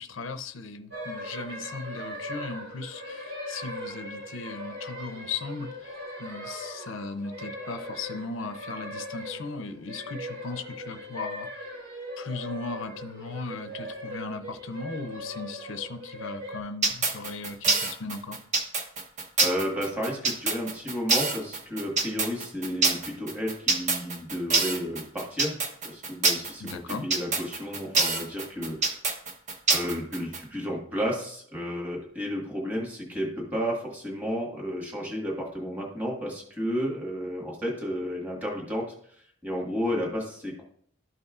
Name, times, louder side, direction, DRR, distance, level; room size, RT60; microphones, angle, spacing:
voice 1, 0.0-11.7 12.2-18.4 26.6-27.1, left 4 dB, 65° left, 8 dB, 0.6 m, -37 dB
sound 1, 0.9-16.6, equal, 85° right, 2.5 m, -39 dB
sound 2, 16.8-30.4, right 3 dB, 35° right, 0.9 m, -25 dB
voice 2, 19.4-25.5 25.8-29.0 29.7-40.6, equal, 10° right, -3 dB, 1.6 m, -32 dB
12.5 x 5.4 x 2.4 m, 0.63 s
head